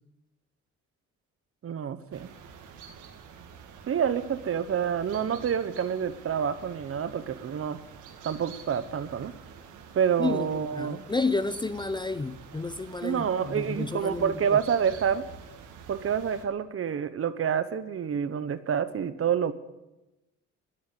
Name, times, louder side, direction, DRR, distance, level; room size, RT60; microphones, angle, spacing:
voice 1, 1.6-2.3 3.9-7.8 8.2-9.3 9.9-11.1 13.0-15.3 15.9-19.5, right 8 dB, 50° right, 1.0 m, -28 dB
sound 1, 2.1-16.4, right 7 dB, 80° right, 1.8 m, -48 dB
voice 2, 10.2-14.6, left 3 dB, 15° left, 0.5 m, -31 dB
11.5 x 8.8 x 9.7 m
cardioid pair, 90°, 30 cm